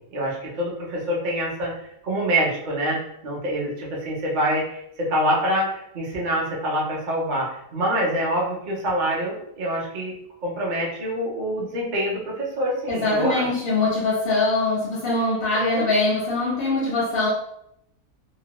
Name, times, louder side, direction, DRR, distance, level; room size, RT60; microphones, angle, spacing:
voice 1, 0.1-1.7 2.0-10.1 10.4-13.5 15.5-15.9, equal, 45° right, -4 dB, 0.6 m, -25 dB
voice 2, 12.9-17.3, left 2 dB, 55° left, -5 dB, 0.7 m, -23 dB
2.9 x 2.1 x 2.9 m, 0.77 s
omnidirectional pair, 1.7 m